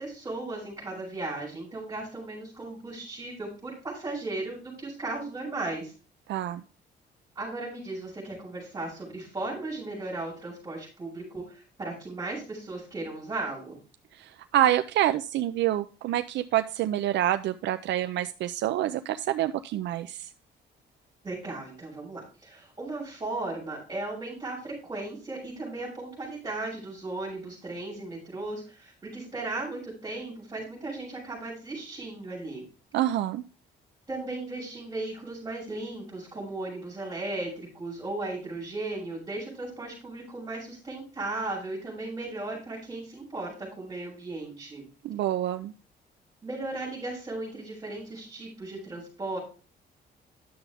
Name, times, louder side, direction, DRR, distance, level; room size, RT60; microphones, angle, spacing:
voice 1, 0.0-5.9 7.4-13.8 21.2-32.6 34.1-44.8 46.4-49.4, right 2 dB, 20° right, -7 dB, 5.5 m, -36 dB
voice 2, 6.3-6.6 14.1-20.3 32.9-33.4 45.0-45.7, right 13 dB, 75° right, 10 dB, 0.5 m, -27 dB
10.5 x 7.0 x 3.4 m, 0.34 s
cardioid pair, 170°, 19 cm